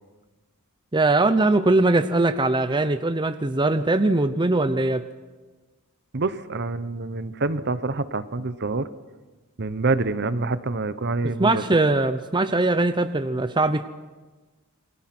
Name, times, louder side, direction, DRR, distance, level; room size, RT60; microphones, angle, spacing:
voice 1, 0.9-5.0 11.4-13.8, right 2 dB, 20° right, 10 dB, 0.7 m, -21 dB
voice 2, 6.1-8.9 9.6-11.6, right 3 dB, 50° right, 13 dB, 1.0 m, -26 dB
29.0 x 23.0 x 6.1 m, 1.3 s
head